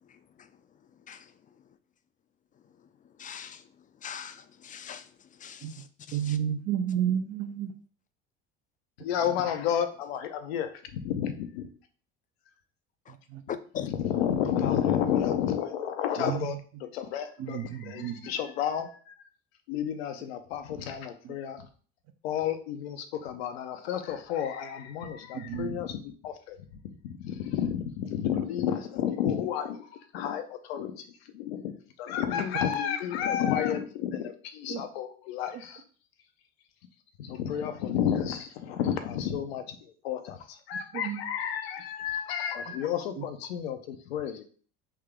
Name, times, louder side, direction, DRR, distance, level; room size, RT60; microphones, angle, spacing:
voice 1, 3.2-3.6 4.0-5.0 5.4-6.4 13.7-13.9, left 8 dB, 25° left, 0.4 m, -41 dB
voice 2, 6.1-7.7 16.2-16.6 17.4-18.3 21.2-21.3 25.3-25.8 34.7-34.8 40.9-41.2 43.2-43.3, right 9 dB, 55° right, 0.6 m, -31 dB
voice 3, 9.0-11.7 13.7-19.2 19.7-21.7 22.2-26.6 26.8-35.8 37.2-44.4, left 9 dB, 90° left, 0.6 m, -31 dB
3.5 x 2.8 x 3.5 m
supercardioid pair, 85°, 30 cm